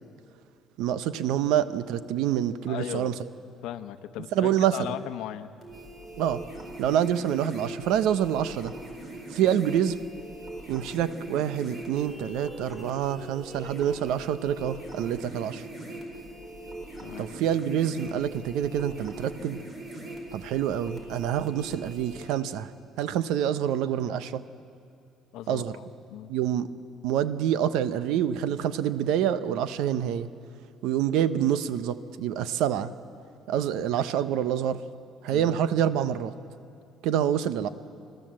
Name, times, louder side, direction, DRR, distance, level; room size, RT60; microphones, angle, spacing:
voice 1, 0.8-3.1 4.3-4.8 6.2-6.4 6.8-8.7 9.3-10.0 10.7-15.6 17.2-19.6 20.3-22.7 23.0-24.4 25.5-25.8 26.3-26.7 27.0-30.3 30.8-32.9 33.5-34.8 35.2-36.3 37.0-37.7, right 10 dB, 80° right, 13 dB, 0.8 m, -26 dB
voice 2, 2.7-3.1 3.6-5.5 9.4-9.5 17.0-17.3 25.3-26.3 35.3-35.6, left 12 dB, 75° left, 9 dB, 0.9 m, -37 dB
sound 1, 5.6-22.2, right 1 dB, 30° right, 4.8 m, -41 dB
25.5 x 14.5 x 7.6 m, 2.5 s
cardioid pair, 130°, 0 cm